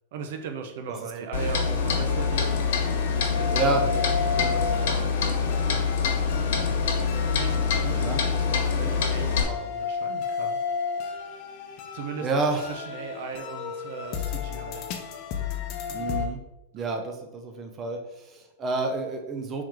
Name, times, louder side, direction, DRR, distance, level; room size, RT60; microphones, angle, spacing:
voice 1, 0.1-2.6 3.3-5.2 5.5-5.9 7.3-10.6 11.9-12.3 12.6-14.8 16.7-17.0, right 5 dB, 65° right, 5 dB, 0.7 m, -38 dB
Clock, 1.3-9.4, left 5 dB, 70° left, 1.1 m, -25 dB
sound 1, 2.1-16.3, left 6 dB, 45° left, 0.7 m, -34 dB
voice 2, 3.5-3.8 8.0-8.2 12.2-12.8 15.9-16.4 16.7-19.6, right 3 dB, 25° right, 4 dB, 0.6 m, -29 dB
3.8 x 3.1 x 4.5 m, 0.96 s
supercardioid pair, 135°, 0 cm